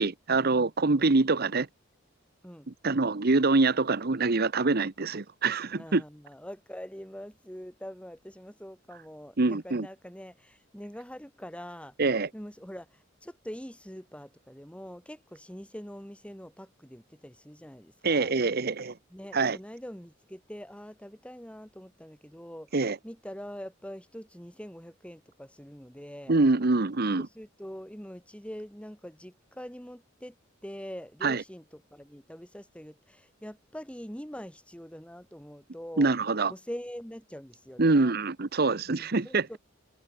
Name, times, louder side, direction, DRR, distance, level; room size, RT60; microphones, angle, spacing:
voice 1, 0.0-1.7 2.8-6.0 9.4-9.9 12.0-12.3 18.0-18.9 19.3-19.6 22.7-23.0 26.3-27.3 31.2-31.4 36.0-36.5 37.8-39.6, right 3 dB, 50° right, 0.9 m, -25 dB
voice 2, 5.7-12.0 12.3-18.3 19.1-22.8 23.0-26.4 27.2-30.4 30.6-36.1 36.5-38.2 38.8-39.6, equal, 5° left, 7.9 m, -44 dB
head